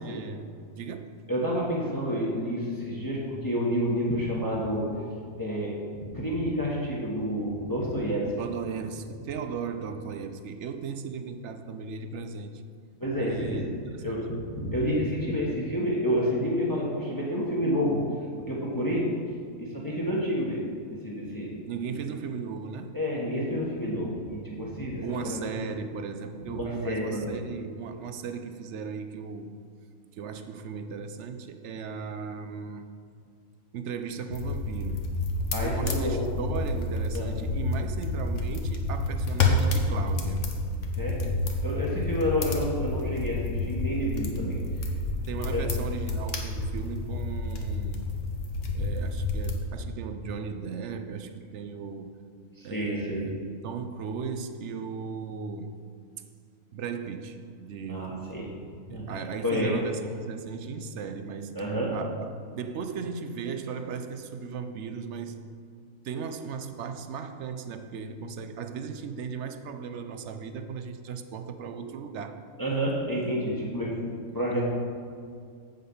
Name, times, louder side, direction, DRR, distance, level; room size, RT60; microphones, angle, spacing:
voice 1, 0.0-1.2 8.4-12.6 13.2-14.3 21.7-23.0 25.0-29.5 30.1-32.9 33.7-35.1 35.6-40.6 45.3-48.0 48.7-52.1 52.6-55.8 56.7-58.4 58.9-65.6 66.0-72.5 74.5-74.6, right 5 dB, 60° right, 8 dB, 0.8 m, -37 dB
voice 2, 1.3-4.9 5.4-5.7 6.0-8.4 13.0-13.6 14.0-18.0 18.4-19.1 19.6-20.6 20.9-21.5 21.9-22.0 22.9-25.5 26.5-27.3 35.5-36.3 37.1-37.3 41.0-41.2 41.6-44.6 45.5-45.7 52.6-53.2 57.9-58.5 58.9-59.1 59.4-59.7 61.5-61.9 72.6-74.1 74.3-74.6, equal, 15° left, -4 dB, 1.3 m, -29 dB
sound 1, 34.3-49.5, left 2 dB, 60° left, 1.3 m, -29 dB
7.5 x 7.5 x 5.5 m, 2.2 s
omnidirectional pair, 1.5 m